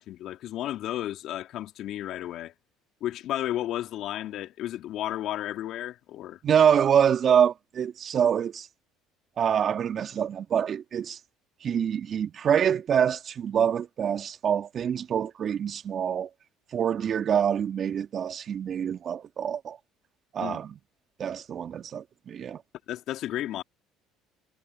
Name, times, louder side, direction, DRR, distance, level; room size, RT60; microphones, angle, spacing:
voice 1, 0.0-2.5 3.0-6.4 20.4-20.6 22.9-23.6, left 13 dB, 60° left, 2.7 m, -33 dB
voice 2, 6.4-8.7 9.4-11.2 11.6-16.3 16.7-19.8 20.3-20.7 21.2-22.6, right 8 dB, 45° right, 2.3 m, -25 dB
hypercardioid pair, 75°, 0 cm